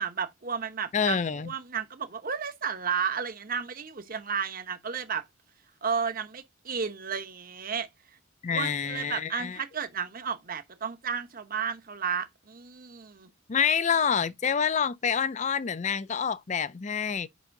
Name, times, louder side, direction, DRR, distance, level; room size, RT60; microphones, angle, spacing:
voice 1, 0.0-5.3 5.8-8.2 8.5-13.3, right 6 dB, 40° right, 0.9 m, -33 dB
voice 2, 0.9-1.5 8.4-9.6 13.5-17.3, left 7 dB, 35° left, 0.4 m, -27 dB
9.2 x 5.6 x 2.6 m
head